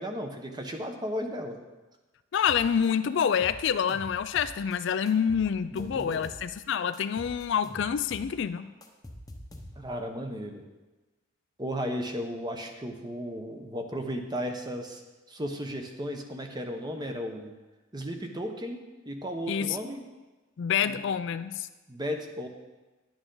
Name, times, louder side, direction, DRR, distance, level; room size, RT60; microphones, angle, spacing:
voice 1, 0.0-1.6 5.7-6.3 9.8-10.6 11.6-15.0 15.3-17.5 17.9-18.8 19.0-20.0 20.8-21.0 21.9-22.5, equal, 20° right, 4 dB, 0.9 m, -35 dB
voice 2, 2.3-8.7 19.5-19.8 20.6-21.7, left 7 dB, 55° left, 12 dB, 0.3 m, -27 dB
sound 1, 2.5-2.9 3.2-4.8 5.1-6.6 6.9-10.0, left 1 dB, 15° left, 0.8 m, -46 dB
11.0 x 9.1 x 3.9 m, 1.2 s
head